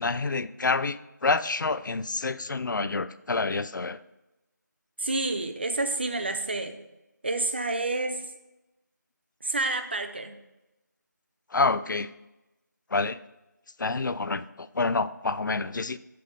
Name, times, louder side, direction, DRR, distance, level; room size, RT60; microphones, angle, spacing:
voice 1, 0.0-4.0 11.5-12.1 12.9-13.2 13.8-16.0, left 3 dB, 80° left, 15 dB, 0.4 m, -28 dB
voice 2, 5.0-6.8 7.2-8.2 9.4-10.4, right 2 dB, 35° right, 7 dB, 0.5 m, -29 dB
7.6 x 3.4 x 5.2 m, 0.96 s
figure-of-eight pair, 170°, 10 cm